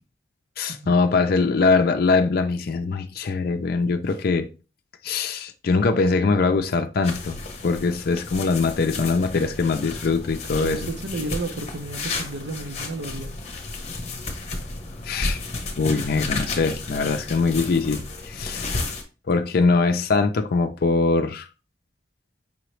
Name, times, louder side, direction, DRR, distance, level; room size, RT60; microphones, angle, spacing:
voice 1, 0.6-4.5 5.0-10.8 15.1-15.4 15.8-18.8 19.3-21.5, left 4 dB, 60° left, 0.4 m, -22 dB
sound 1, 7.0-19.0, left 3 dB, 40° left, 0.9 m, -32 dB
voice 2, 10.6-13.3, right 2 dB, 75° right, 0.7 m, -32 dB
5.5 x 2.9 x 3.1 m
head